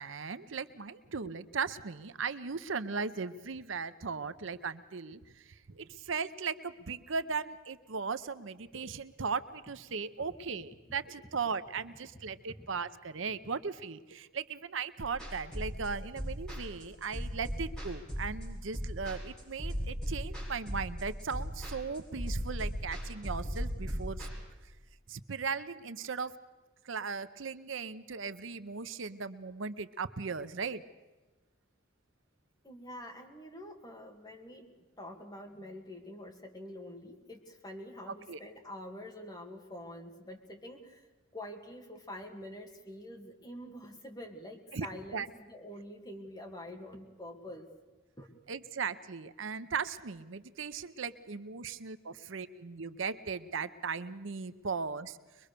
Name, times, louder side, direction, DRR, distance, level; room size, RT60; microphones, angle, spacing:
voice 1, 0.0-24.3 25.1-26.3 26.9-30.8 38.3-38.4 44.7-44.9 45.1-45.3 48.5-55.2, right 5 dB, 70° right, 13 dB, 0.7 m, -37 dB
sound 1, 15.0-24.3, equal, 5° left, 8.0 m, -37 dB
voice 2, 32.6-41.1 41.3-47.7 48.2-48.3, left 1 dB, 20° left, 2 dB, 2.2 m, -46 dB
23.0 x 22.0 x 6.7 m, 1.2 s
head